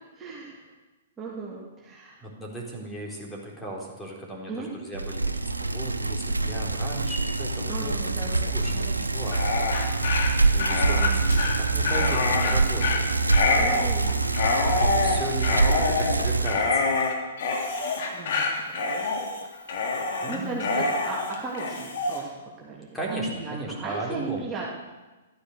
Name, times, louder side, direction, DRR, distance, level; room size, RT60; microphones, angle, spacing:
voice 1, 0.1-0.7 1.2-2.2 4.5-4.7 7.7-9.1 13.6-14.2 18.1-18.8 19.7-24.7, right 3 dB, 15° right, -4 dB, 2.9 m, -37 dB
voice 2, 2.2-9.4 10.5-13.0 14.8-17.0 20.2-20.7 22.9-24.5, right 1 dB, 10° left, -2 dB, 4.0 m, -36 dB
Bicycle, 4.9-16.6, right 3 dB, 85° right, 1.0 m, -25 dB
Dog, 9.2-22.2, left 4 dB, 50° left, 3.1 m, -26 dB
14.5 x 12.5 x 6.7 m, 1.2 s
figure-of-eight pair, 115°, 0 cm